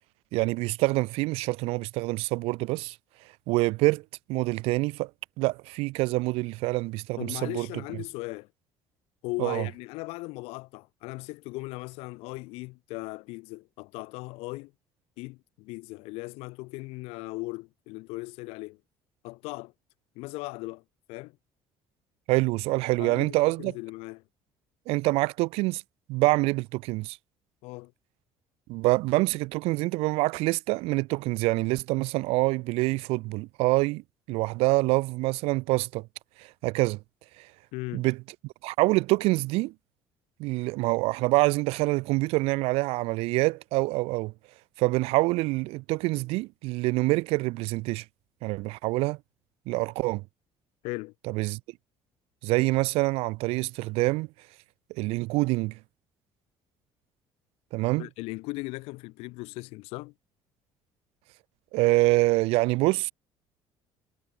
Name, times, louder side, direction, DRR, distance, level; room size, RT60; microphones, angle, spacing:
voice 1, 0.3-3.0 3.5-4.0 4.3-5.1 5.4-7.7 9.4-9.7 22.3-23.7 24.9-25.8 26.1-27.2 28.7-34.0 34.3-36.1 36.4-37.0 37.4-37.5 37.9-38.2 38.6-39.7 40.4-44.3 44.8-48.0 48.4-49.2 49.7-50.2 51.3-51.6 52.4-54.3 55.0-55.8 57.7-58.1 61.7-63.1, right 22 dB, 80° right, 0.4 m, -26 dB
voice 2, 7.2-8.5 9.2-14.7 15.2-18.8 19.2-19.7 20.1-20.8 21.1-21.4 23.0-24.2 27.6-27.9 37.7-38.1 50.8-51.1 58.0-60.1, left 24 dB, 90° left, 1.2 m, -38 dB
cardioid pair, 135°, 10 cm